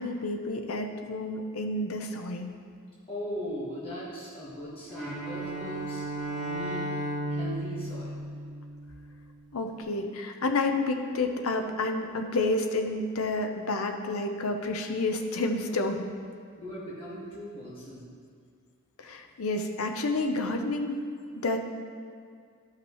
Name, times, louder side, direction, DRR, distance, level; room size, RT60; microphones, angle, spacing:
voice 1, 0.0-2.6 9.5-16.1 19.0-21.0 21.4-21.6, left 2 dB, 80° left, 5 dB, 0.7 m, -30 dB
voice 2, 3.1-6.9 7.3-8.2 16.6-18.0, equal, 25° left, -8 dB, 1.6 m, -39 dB
Bowed string instrument, 4.9-9.1, right 1 dB, ahead, 1.7 m, -34 dB
12.5 x 5.8 x 3.1 m, 2.2 s
head